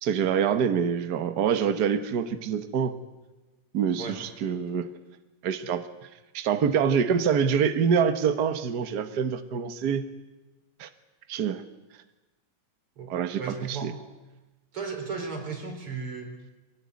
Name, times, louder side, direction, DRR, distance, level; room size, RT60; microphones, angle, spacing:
voice 1, 0.0-2.9 3.7-4.9 5.4-5.8 6.3-10.0 10.8-10.9 11.3-11.6 13.1-13.4 13.7-13.9, right 7 dB, 85° right, 10 dB, 0.8 m, -25 dB
voice 2, 13.0-13.9 14.7-16.4, right 5 dB, 45° right, 4 dB, 4.9 m, -35 dB
23.0 x 18.5 x 9.5 m, 1.1 s
omnidirectional pair, 3.7 m